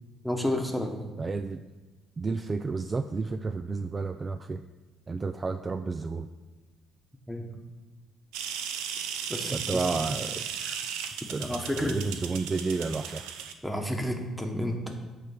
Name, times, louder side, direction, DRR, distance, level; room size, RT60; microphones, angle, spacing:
voice 1, 0.2-1.1 7.3-7.5 9.3-10.1 10.6-10.8 11.4-12.0 13.6-14.9, left 1 dB, ahead, 3 dB, 1.2 m, -31 dB
voice 2, 1.2-1.6 2.2-4.6 5.1-6.3 9.5-10.4 11.3-11.5 11.8-13.3, right 4 dB, 30° right, 9 dB, 0.3 m, -31 dB
sound 1, 8.3-13.5, right 8 dB, 90° right, 0.5 m, -36 dB
8.5 x 3.5 x 6.3 m, 1.2 s
supercardioid pair, 85°, 0 cm